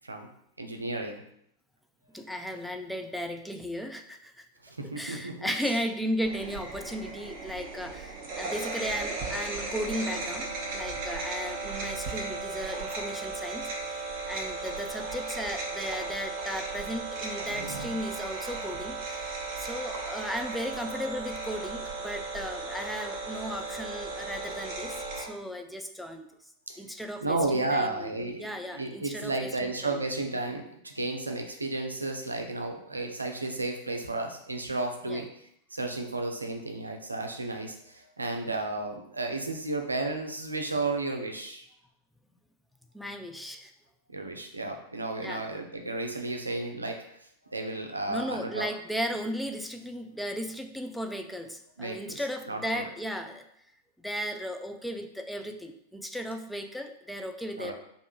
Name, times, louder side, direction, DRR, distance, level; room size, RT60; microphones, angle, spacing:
voice 1, 0.6-1.2 4.6-5.8 17.4-18.0 25.3-25.4 26.7-26.8 27.2-35.3 35.7-41.7 44.1-47.0 47.5-48.7 51.8-52.9 57.6-57.7, right 2 dB, 80° right, 4 dB, 0.5 m, -33 dB
voice 2, 2.1-4.4 4.8-26.3 26.8-28.1 28.4-30.0 35.1-35.2 42.9-43.7 45.2-45.5 48.1-53.5 54.0-57.7, equal, ahead, 5 dB, 0.4 m, -36 dB
sound 1, 6.2-25.2, right 3 dB, 40° right, 1.0 m, -36 dB
3.3 x 2.5 x 4.5 m, 0.74 s
figure-of-eight pair, 90°, 0 cm